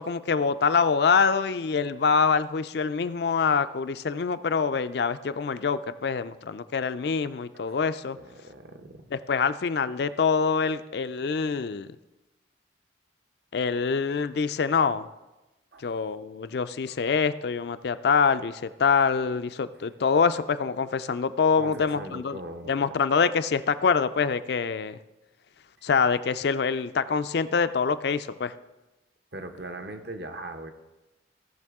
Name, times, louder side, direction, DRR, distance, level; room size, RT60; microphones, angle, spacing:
voice 1, 0.0-8.2 9.1-11.9 13.5-15.1 15.8-22.4 22.7-25.0 25.8-28.5, left 5 dB, 55° left, 12 dB, 0.4 m, -25 dB
voice 2, 8.2-9.1 15.7-15.9 21.6-23.0 29.3-30.7, right 2 dB, 55° right, 7 dB, 0.8 m, -40 dB
16.5 x 5.9 x 3.6 m, 1.0 s
head